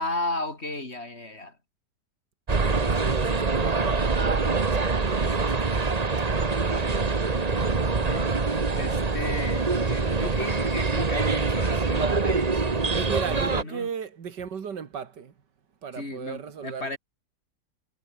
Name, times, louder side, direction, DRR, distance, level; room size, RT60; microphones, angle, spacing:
voice 1, 0.0-1.6 6.6-8.3 8.7-12.7 13.2-13.9 16.0-17.0, left 2 dB, 35° left, 4.3 m, -35 dB
sound 1, 2.5-13.6, right 4 dB, 25° right, 1.3 m, -25 dB
voice 2, 2.5-5.7 12.9-15.3 15.8-17.0, right 7 dB, 80° right, 2.4 m, -36 dB
omnidirectional pair, 1.8 m